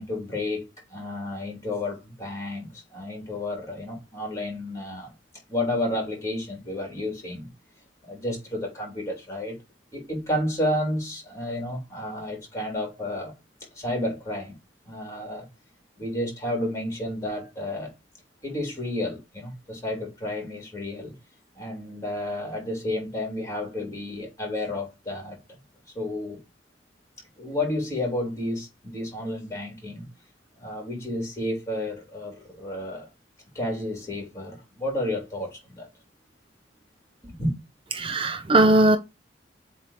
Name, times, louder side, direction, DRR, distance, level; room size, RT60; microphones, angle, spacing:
voice 1, 0.0-5.1 5.5-7.5 8.0-9.6 9.9-13.3 13.7-14.6 14.8-15.5 16.0-17.9 18.4-21.1 21.5-25.6 25.9-26.4 27.4-30.1 30.6-33.1 33.5-35.9 37.2-37.5, left 1 dB, 15° left, 3.1 m, -31 dB
voice 2, 37.9-39.0, right 2 dB, 30° right, 0.5 m, -19 dB
7.5 x 2.8 x 4.9 m
head